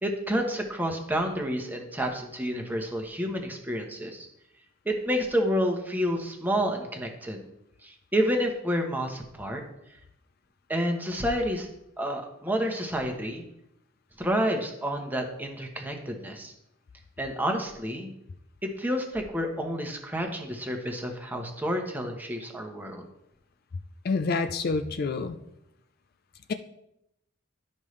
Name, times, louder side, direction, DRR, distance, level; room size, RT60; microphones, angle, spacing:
voice 1, 0.0-4.3 4.8-7.4 7.8-9.6 10.7-11.7 12.0-13.4 14.2-16.5 17.2-18.1 18.6-23.0, equal, 10° right, 2 dB, 1.0 m, -29 dB
voice 2, 24.0-25.4 26.5-26.6, left 4 dB, 50° left, 9 dB, 0.4 m, -27 dB
11.5 x 5.4 x 3.2 m, 0.82 s
head